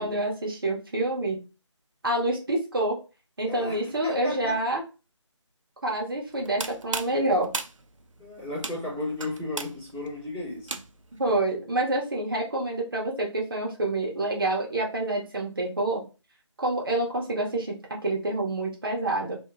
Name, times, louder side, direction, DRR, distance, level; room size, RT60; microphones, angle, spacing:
voice 1, 0.0-1.4 2.0-3.0 3.4-4.8 5.8-7.5 11.2-16.0 16.6-19.4, right 2 dB, 45° right, 0.8 m, -27 dB
voice 2, 3.4-4.6 8.2-10.8, left 1 dB, 5° left, 1.3 m, -34 dB
sound 1, 6.3-11.2, right 3 dB, 90° right, 0.4 m, -37 dB
2.9 x 2.4 x 2.4 m
figure-of-eight pair, 160°, 16 cm